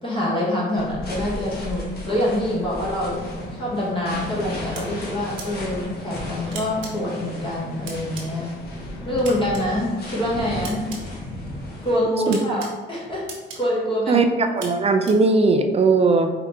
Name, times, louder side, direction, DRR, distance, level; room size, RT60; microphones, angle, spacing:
voice 1, 0.0-3.2 3.5-8.5 9.0-10.8 11.8-14.3, left 1 dB, 25° left, -6 dB, 1.4 m, -25 dB
sound 1, 0.7-11.9, left 1 dB, 55° left, 1.2 m, -36 dB
sound 2, 2.3-9.8, left 2 dB, 85° left, 0.6 m, -39 dB
sound 3, 3.3-3.4 4.8-4.9 5.4-5.5 6.5-6.9 7.9-8.2 9.2-9.6 10.6-11.0 12.3-12.7 13.3-13.6 14.6-14.7 15.1-15.2, right 4 dB, 85° right, 1.2 m, -35 dB
voice 2, 14.1-16.3, right 3 dB, 30° right, 6 dB, 0.5 m, -18 dB
4.8 x 2.9 x 3.5 m, 1.3 s
cardioid pair, 90°, 20 cm